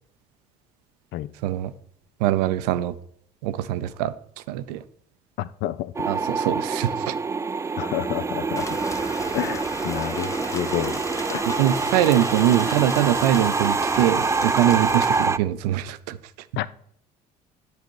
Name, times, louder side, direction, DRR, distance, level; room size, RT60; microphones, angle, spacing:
voice 1, 1.4-1.7 2.2-2.9 3.4-4.1 4.5-4.8 6.0-7.1 11.5-16.2, right 12 dB, 80° right, 0.5 m, -23 dB
voice 2, 5.4-5.9 7.8-8.8 9.3-11.0 11.3-11.4 16.6-16.7, left 14 dB, 60° left, 0.5 m, -29 dB
sound 1, 6.0-15.4, right 4 dB, 15° right, 0.4 m, -26 dB
Rain, 8.6-15.3, left 2 dB, 15° left, 0.8 m, -35 dB
9.5 x 4.2 x 4.6 m
hypercardioid pair, 60°, 20 cm